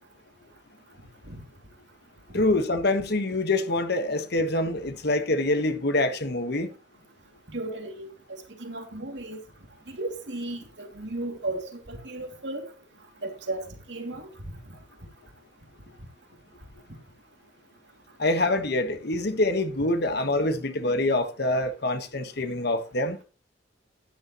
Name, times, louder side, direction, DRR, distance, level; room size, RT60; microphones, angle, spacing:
voice 1, 2.3-6.7 18.2-23.2, left 2 dB, 60° left, 1.4 m, -25 dB
voice 2, 7.5-9.4 9.9-12.7 13.2-13.6 13.9-14.5, right 2 dB, 70° right, 2.7 m, -35 dB
13.0 x 9.9 x 3.0 m
head